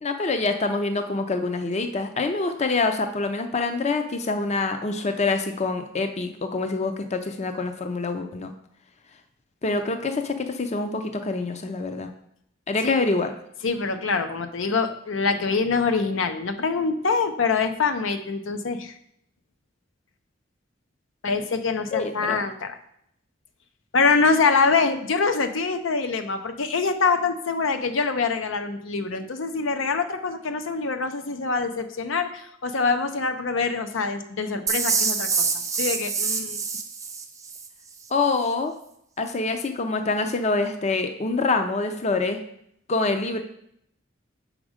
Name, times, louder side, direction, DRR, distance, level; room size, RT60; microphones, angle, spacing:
voice 1, 0.0-8.5 9.6-12.1 12.7-13.3 21.9-22.4 38.1-38.7 39.2-42.4 42.9-43.4, left 3 dB, 35° left, 7 dB, 0.5 m, -26 dB
voice 2, 13.6-18.9 21.2-22.8 23.9-35.5 35.8-36.6, left 4 dB, 90° left, 7 dB, 0.6 m, -24 dB
sound 1, 34.7-37.7, right 5 dB, 15° right, 0.5 m, -26 dB
6.2 x 4.9 x 5.0 m, 0.73 s
head